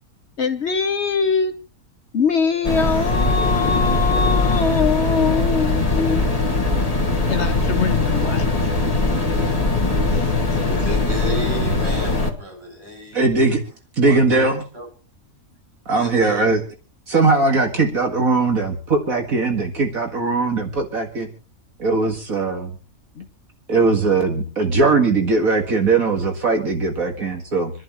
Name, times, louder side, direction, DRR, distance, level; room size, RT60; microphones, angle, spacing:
voice 1, 0.4-1.5 2.1-6.2 7.3-8.7 23.2-23.3, left 5 dB, 55° left, 1.1 m, -22 dB
sound 1, 2.6-12.3, left 3 dB, 25° left, 2.1 m, -20 dB
voice 2, 10.0-13.4 14.0-14.5 14.7-14.9 15.9-16.5, equal, 45° right, 6.9 m, -33 dB
voice 3, 13.1-13.6 14.0-14.6 15.9-16.6 17.1-21.3 21.8-22.7 23.7-27.7, right 3 dB, 70° right, 2.4 m, -19 dB
28.5 x 11.0 x 3.1 m
omnidirectional pair, 1.5 m